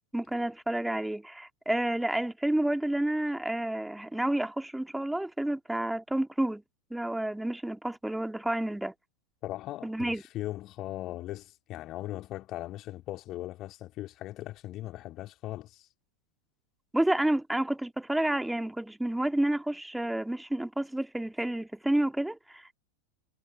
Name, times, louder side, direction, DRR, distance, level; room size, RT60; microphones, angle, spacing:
voice 1, 0.1-6.6 6.9-8.9 9.8-10.2 16.9-22.8, right 1 dB, 5° right, 2.3 m, -30 dB
voice 2, 9.4-15.8, left 15 dB, 35° left, 3.0 m, -39 dB
figure-of-eight pair, 90°, 0 cm